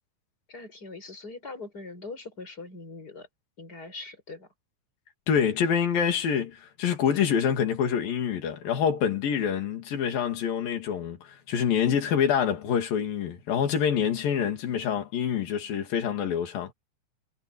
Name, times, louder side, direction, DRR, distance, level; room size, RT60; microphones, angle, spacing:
voice 1, 0.5-3.3 3.6-4.5, left 3 dB, 20° left, 7.1 m, -41 dB
voice 2, 5.3-16.7, left 8 dB, 60° left, 4.3 m, -26 dB
omnidirectional pair, 4.9 m